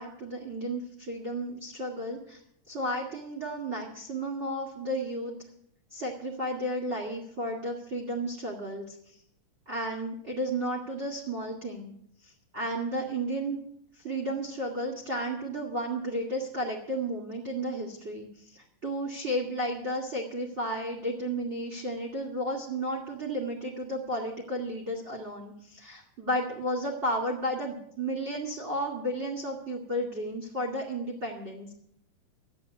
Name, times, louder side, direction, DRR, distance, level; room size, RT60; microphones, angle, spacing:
voice 1, 0.0-2.4 2.7-5.3 5.9-9.2 9.7-11.9 12.2-13.6 13.9-31.7, right 1 dB, 25° right, -1 dB, 2.0 m, -33 dB
13.0 x 8.9 x 8.3 m, 0.70 s
omnidirectional pair, 3.7 m